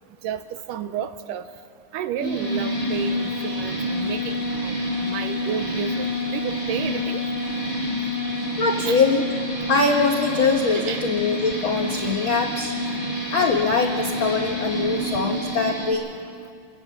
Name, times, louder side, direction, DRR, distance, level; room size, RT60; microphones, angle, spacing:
voice 1, 0.2-1.5 1.9-4.8 5.0-7.2 8.9-9.0 10.7-11.0, right 8 dB, 75° right, 10 dB, 2.2 m, -31 dB
sound 1, 2.2-15.9, left 1 dB, 40° right, 6.6 m, -28 dB
voice 2, 8.6-9.2 9.7-12.7 13.3-16.1, left 4 dB, 65° left, 1 dB, 1.2 m, -22 dB
29.0 x 17.5 x 7.3 m, 2.3 s
omnidirectional pair, 4.1 m